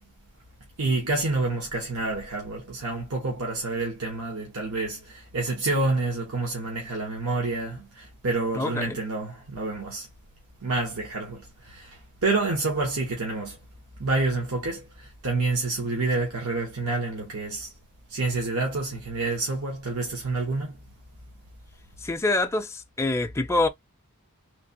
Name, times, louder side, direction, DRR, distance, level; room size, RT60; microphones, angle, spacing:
voice 1, 0.8-10.1 10.6-13.6 14.0-17.7 18.1-20.8, right 3 dB, 80° right, 1.2 m, -28 dB
voice 2, 8.6-9.0 22.0-23.7, left 2 dB, 10° left, 0.4 m, -25 dB
3.3 x 3.2 x 2.8 m
head